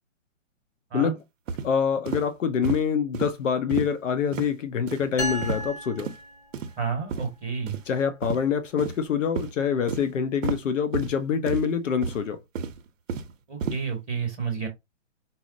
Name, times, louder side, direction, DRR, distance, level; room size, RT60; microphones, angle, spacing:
sound 1, 1.5-1.7 2.1-2.2 2.6-2.8 3.1-3.3 3.7-3.9 4.3-4.5 4.9-5.0 5.4-5.7 6.0-6.1 6.5-6.7 7.1-7.2 7.7-7.8 8.2-8.4 8.8-9.0 9.4-9.5 9.9-10.0 10.4-10.6 10.9-11.1 11.5-11.7 12.0-12.2 12.6-13.3 13.6-13.8, right 5 dB, 75° right, 0.6 m, -31 dB
voice 1, 1.6-6.1 7.9-12.4, left 7 dB, 70° left, 0.6 m, -25 dB
sound 2, 5.2-7.0, equal, 55° left, 2.0 m, -34 dB
voice 2, 6.8-7.8 13.5-14.7, right 5 dB, ahead, 0.5 m, -30 dB
4.0 x 2.0 x 2.5 m
hypercardioid pair, 175°, 39 cm